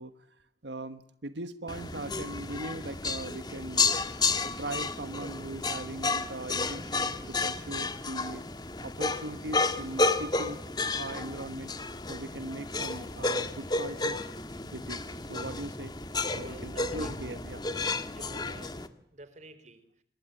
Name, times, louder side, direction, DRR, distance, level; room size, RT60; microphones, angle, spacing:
voice 1, 0.0-10.6 10.9-11.7 12.1-14.3 14.7-15.9 16.3-17.6, right 2 dB, 85° right, 10 dB, 1.3 m, -40 dB
sound 1, 1.7-18.9, left 3 dB, 25° left, 1.6 m, -32 dB
voice 2, 16.4-17.1 18.1-18.8 19.1-19.8, right 1 dB, 40° right, 12 dB, 4.0 m, -49 dB
27.5 x 22.5 x 9.0 m, 0.69 s
head